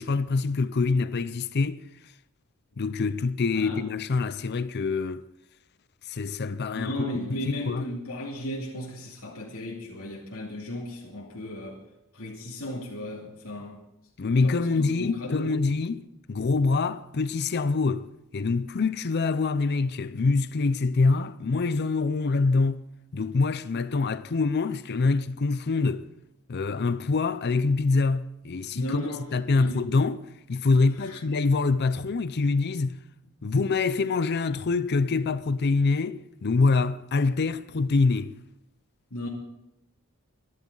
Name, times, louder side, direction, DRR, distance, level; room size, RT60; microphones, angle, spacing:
voice 1, 0.0-1.8 2.8-5.2 6.1-7.9 14.2-22.8 23.1-26.1 26.5-33.0 33.4-38.3, left 4 dB, 45° left, 0.5 m, -25 dB
voice 2, 6.7-11.8 12.1-13.8 14.4-15.6 28.7-29.3 29.6-29.8 31.0-31.2 39.1-39.3, equal, 70° left, 2.6 m, -35 dB
24.0 x 11.0 x 3.9 m
head